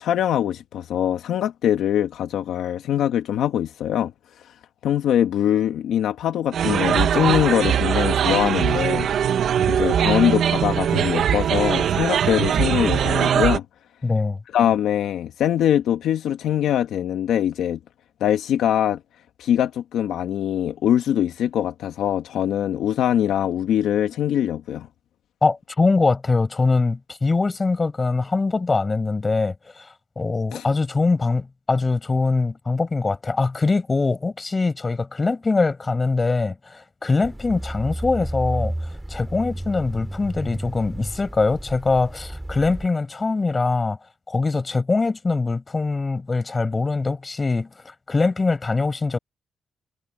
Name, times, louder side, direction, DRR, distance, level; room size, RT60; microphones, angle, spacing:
voice 1, 0.0-4.1 4.8-9.1 9.7-13.6 14.5-17.8 18.2-19.0 19.4-24.9 30.5-30.6, left 10 dB, 90° left, 1.4 m, -22 dB
sound 1, 6.5-13.6, right 9 dB, 75° right, 1.0 m, -21 dB
voice 2, 14.0-14.4 25.4-29.9 30.1-38.7 39.1-44.0 44.3-47.7 48.1-49.2, left 3 dB, 30° left, 6.9 m, -22 dB
sound 2, 37.2-42.9, right 1 dB, 10° right, 6.5 m, -32 dB
cardioid pair, 95°, 0 cm